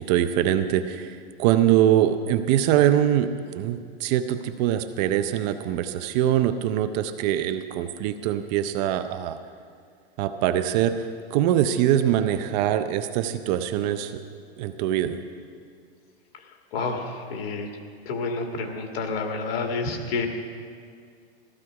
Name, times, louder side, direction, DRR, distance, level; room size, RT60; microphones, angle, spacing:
voice 1, 0.0-9.4 10.2-14.2 14.6-15.2, right 11 dB, 40° right, 9 dB, 0.7 m, -23 dB
voice 2, 16.7-17.7 18.1-20.3, left 4 dB, 60° left, 3 dB, 2.2 m, -29 dB
15.0 x 13.0 x 4.8 m, 2.2 s
supercardioid pair, 140°, 33 cm